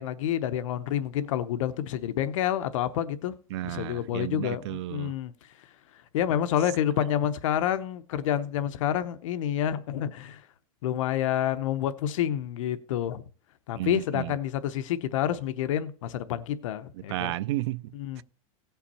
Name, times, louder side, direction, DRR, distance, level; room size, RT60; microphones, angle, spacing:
voice 1, 0.0-3.3 3.6-5.3 6.1-10.4 10.8-13.2 13.7-17.3 17.9-18.2, left 10 dB, 65° left, 0.8 m, -28 dB
voice 2, 3.5-5.1 13.7-14.3 16.9-18.2, right 15 dB, 50° right, 0.4 m, -33 dB
17.0 x 5.8 x 4.2 m
supercardioid pair, 170°, 18 cm